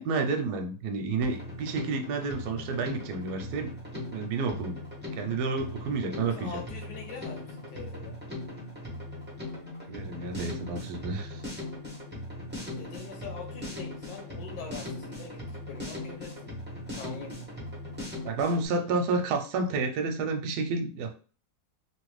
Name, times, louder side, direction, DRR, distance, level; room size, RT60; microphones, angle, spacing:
voice 1, 0.0-4.8 5.2-6.6 9.9-11.4 18.2-21.1, right 3 dB, 75° right, 4 dB, 1.1 m, -30 dB
Drum kit, 1.2-18.7, left 1 dB, 10° right, 0.5 m, -39 dB
voice 2, 6.3-8.2 12.7-16.5 17.0-17.5, left 6 dB, 80° left, 2 dB, 1.3 m, -43 dB
3.0 x 2.5 x 3.1 m, 0.39 s
omnidirectional pair, 2.0 m